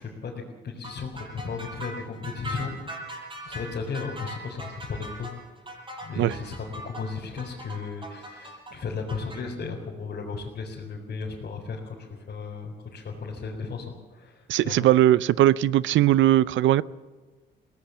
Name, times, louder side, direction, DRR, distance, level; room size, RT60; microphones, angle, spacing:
voice 1, 0.0-3.0 3.4-5.3 6.0-14.9, left 5 dB, 50° left, -3 dB, 4.4 m, -35 dB
sound 1, 0.8-9.4, right 1 dB, 25° right, 7.2 m, -39 dB
voice 2, 14.5-16.8, right 13 dB, 75° right, 19 dB, 0.6 m, -19 dB
22.0 x 18.0 x 7.3 m, 1.3 s
cardioid pair, 90°, 20 cm